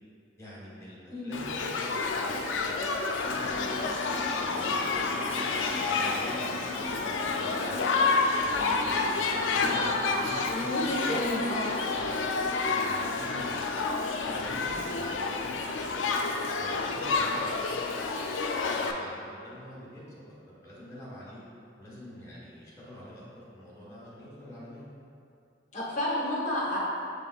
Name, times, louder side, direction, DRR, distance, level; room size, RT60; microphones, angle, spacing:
voice 1, 0.4-3.8 4.3-7.8 8.4-11.1 11.9-12.1 12.6-16.0 16.6-20.0 20.3-20.4 20.6-21.4 21.8-24.8, equal, 15° left, -8 dB, 1.2 m, -46 dB
Shout / Human group actions, 1.3-18.9, left 4 dB, 80° left, 0.3 m, -29 dB
sound 1, 3.2-18.1, left 1 dB, 35° right, 0.3 m, -45 dB
voice 2, 10.5-11.7 25.7-26.8, left 1 dB, 40° left, -5 dB, 0.9 m, -31 dB
6.2 x 3.5 x 2.3 m, 2.5 s
head